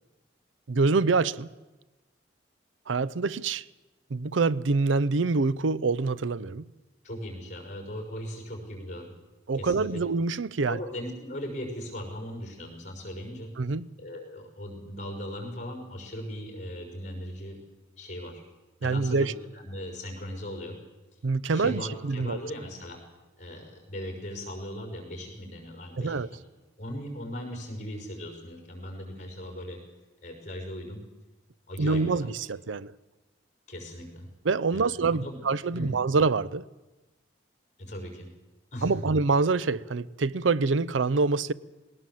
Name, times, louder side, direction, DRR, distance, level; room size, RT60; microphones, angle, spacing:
voice 1, 0.7-1.5 2.9-3.6 4.1-6.6 9.5-10.8 13.6-13.9 18.8-19.3 21.2-22.4 26.0-26.3 31.8-32.9 34.4-36.6 38.8-41.5, right 4 dB, 85° right, 0.6 m, -26 dB
voice 2, 7.0-9.2 9.5-10.0 10.7-13.5 14.0-17.6 18.0-18.4 18.8-20.8 21.5-23.0 23.4-26.2 26.8-29.8 30.2-31.0 31.7-32.3 33.7-34.3 34.7-35.4 35.7-35.9 37.8-38.3 38.7-39.0, equal, 40° left, 5.6 m, -38 dB
20.0 x 18.5 x 7.7 m
head